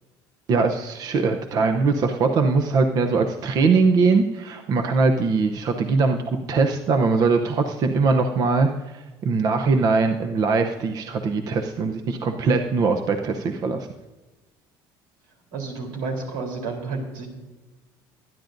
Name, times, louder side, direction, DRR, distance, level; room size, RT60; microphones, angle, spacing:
voice 1, 0.5-13.9, right 4 dB, 45° right, 6 dB, 0.7 m, -21 dB
voice 2, 15.5-17.3, right 3 dB, 85° right, 2 dB, 3.6 m, -30 dB
23.0 x 10.5 x 2.6 m, 1.2 s
cardioid pair, 145°, 9 cm